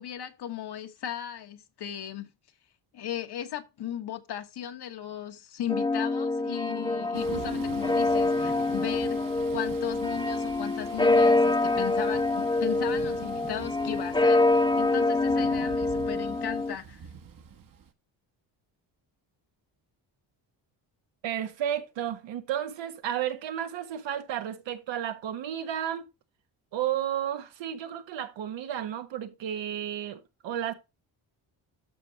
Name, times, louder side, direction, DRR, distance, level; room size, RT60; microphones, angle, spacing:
voice 1, 0.0-2.3 2.9-17.0, left 11 dB, 60° left, 1.4 m, -36 dB
sound 1, 5.7-16.7, left 2 dB, 10° left, 0.8 m, -25 dB
Thunder / Rain, 7.1-17.9, right 7 dB, 50° right, 1.2 m, -44 dB
voice 2, 21.2-26.1 26.7-30.7, right 10 dB, 80° right, 1.5 m, -32 dB
13.0 x 4.6 x 2.9 m
cardioid pair, 80°, 44 cm